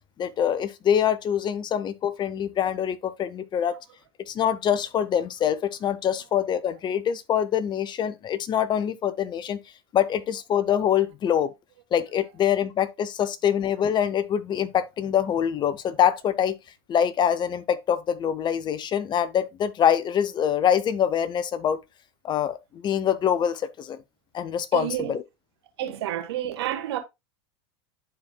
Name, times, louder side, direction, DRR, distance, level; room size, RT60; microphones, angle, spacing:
voice 1, 0.2-3.8 4.3-9.6 9.9-11.5 11.9-16.5 16.9-21.8 22.2-24.0 24.3-25.2, left 9 dB, 35° left, 0.8 m, -24 dB
voice 2, 24.7-25.1 25.8-27.0, right 12 dB, 75° right, 1.4 m, -29 dB
11.0 x 4.4 x 2.3 m
hypercardioid pair, 100°, 14 cm